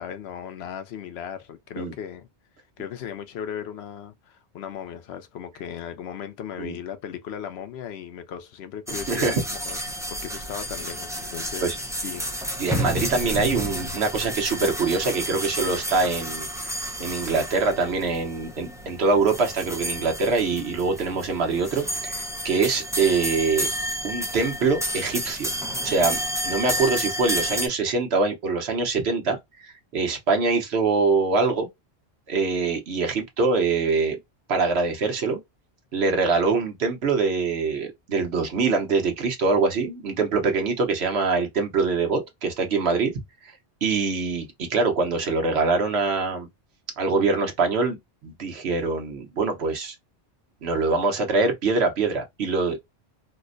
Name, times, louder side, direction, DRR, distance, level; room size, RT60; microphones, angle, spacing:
voice 1, 0.0-2.3 2.8-12.3, left 8 dB, 75° left, 0.8 m, -37 dB
sound 1, 8.9-27.7, equal, 5° right, 0.4 m, -31 dB
voice 2, 9.1-9.4 9.8-9.9 11.6-11.8 12.6-16.5 17.0-23.7 24.0-25.5 25.8-31.7 32.3-34.2 34.5-35.4 35.9-43.1 43.8-46.5 47.0-48.0 48.2-49.9 50.6-52.8, right 4 dB, 70° right, 1.2 m, -24 dB
4.3 x 2.1 x 2.5 m
omnidirectional pair, 1.1 m